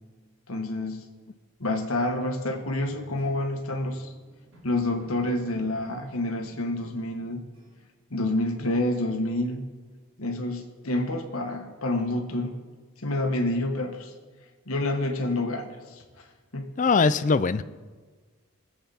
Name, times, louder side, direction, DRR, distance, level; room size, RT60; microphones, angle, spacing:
voice 1, 0.5-1.0 1.6-4.1 4.6-7.4 8.1-9.7 10.2-12.5 13.0-14.1 14.7-16.2 16.5-16.6, left 1 dB, 75° left, 3 dB, 1.6 m, -28 dB
sound 1, 2.7-7.3 7.5-7.9, right 1 dB, 70° right, 3.6 m, -54 dB
voice 2, 16.8-17.6, left 4 dB, 35° left, 15 dB, 0.4 m, -21 dB
22.0 x 8.0 x 4.2 m, 1.4 s
head